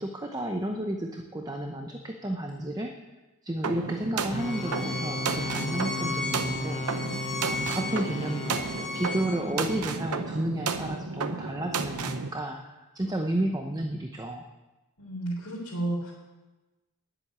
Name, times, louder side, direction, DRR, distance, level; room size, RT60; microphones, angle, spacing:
voice 1, 0.0-2.9 3.4-14.5, right 1 dB, 15° right, 4 dB, 0.7 m, -32 dB
sound 1, 3.6-12.3, right 4 dB, 90° right, 0.9 m, -33 dB
sound 2, 4.3-9.5, left 2 dB, 25° left, 0.6 m, -36 dB
Bowed string instrument, 4.4-9.8, left 3 dB, ahead, 1.8 m, -36 dB
voice 2, 9.3-9.8 15.0-16.1, right 1 dB, 75° left, -8 dB, 3.8 m, -33 dB
10.5 x 7.9 x 9.6 m, 1.1 s
head